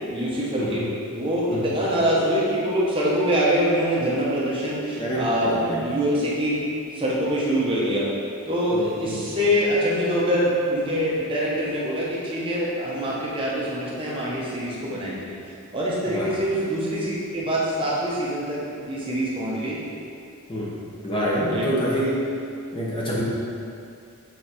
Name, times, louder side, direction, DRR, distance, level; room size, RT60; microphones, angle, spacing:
voice 1, 0.1-0.9 1.1-6.7 6.9-8.1 8.4-15.2 15.7-18.6 18.9-19.8 21.5-21.8, equal, 25° right, -6 dB, 1.1 m, -24 dB
voice 2, 5.0-5.8 8.7-9.2 16.1-16.3 20.5-20.8 21.0-22.3 22.7-23.2, equal, 25° left, -6 dB, 0.9 m, -26 dB
6.6 x 3.9 x 4.4 m, 2.4 s
head